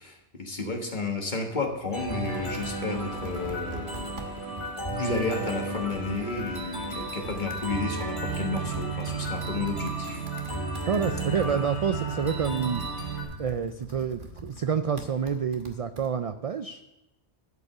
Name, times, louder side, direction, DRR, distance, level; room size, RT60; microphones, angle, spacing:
voice 1, 0.0-4.3 4.9-10.3 11.4-11.6, left 3 dB, 45° left, 2 dB, 1.6 m, -32 dB
Computer keyboard, 1.5-16.1, right 1 dB, 50° right, 1.4 m, -43 dB
sound 1, 1.9-13.2, right 2 dB, 25° left, 2.6 m, -33 dB
voice 2, 10.9-12.8 13.4-16.8, right 7 dB, 65° right, 9 dB, 0.3 m, -28 dB
12.5 x 5.4 x 6.7 m, 0.93 s
omnidirectional pair, 1.2 m